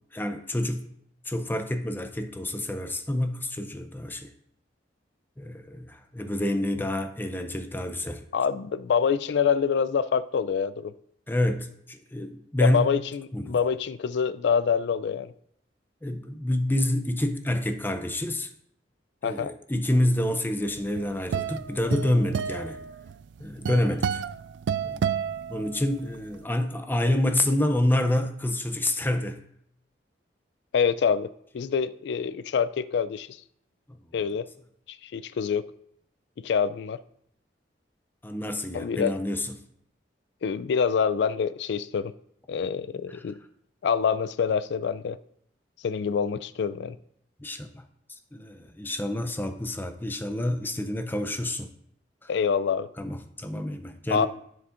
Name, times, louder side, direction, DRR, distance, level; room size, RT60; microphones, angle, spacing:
voice 1, 0.1-0.9 1.3-4.3 5.4-8.2 11.3-13.0 13.3-13.6 16.0-18.5 19.2-22.8 23.4-24.2 24.8-25.1 25.5-29.4 38.2-39.5 43.1-43.2 47.4-47.9 48.3-51.7 52.2-52.3 53.0-54.3, left 1 dB, 10° left, 0.6 m, -28 dB
voice 2, 8.3-10.9 12.6-15.3 19.2-19.5 30.7-31.3 31.5-33.3 34.1-34.5 34.9-35.6 36.4-37.0 38.7-39.2 40.4-42.1 42.5-43.4 43.8-45.2 45.8-47.0 52.3-52.9 54.1-54.3, left 6 dB, 70° left, 0.3 m, -26 dB
sound 1, 20.7-26.2, right 7 dB, 75° right, 0.3 m, -31 dB
11.0 x 6.9 x 2.5 m
head